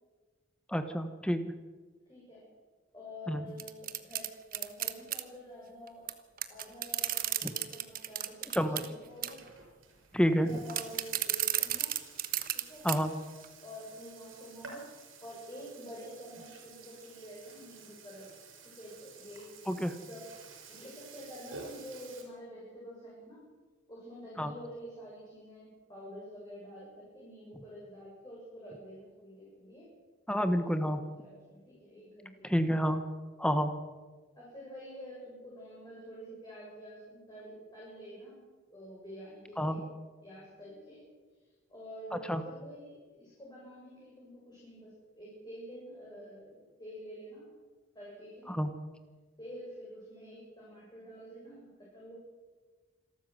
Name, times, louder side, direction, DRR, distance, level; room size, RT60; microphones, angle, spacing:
voice 1, 0.7-1.4 3.3-3.4 7.4-7.5 8.5-8.8 10.1-10.5 12.8-13.1 19.7-20.0 24.4-24.5 30.3-31.0 32.4-33.0 33.4-33.7 39.6-39.8 42.1-42.4 48.5-48.7, equal, 5° left, 9 dB, 1.2 m, -29 dB
voice 2, 2.1-2.4 2.9-6.1 6.5-9.5 10.2-12.2 12.5-12.9 13.6-14.8 15.2-19.5 20.0-20.2 20.7-23.4 23.9-29.9 30.5-32.8 34.4-38.4 38.7-39.8 40.2-41.0 41.7-47.5 47.9-48.6 49.4-52.2, equal, 20° left, -6 dB, 7.3 m, -48 dB
sound 1, 3.6-5.2 6.1-6.2 6.4-8.9 9.2-9.5 10.7-12.6 12.9-13.0 13.4-13.5, right 13 dB, 45° right, 1.3 m, -32 dB
Burping eructation, 9.1-22.2, right 4 dB, 85° right, 6.4 m, -52 dB
27.0 x 13.0 x 7.9 m, 1.3 s
head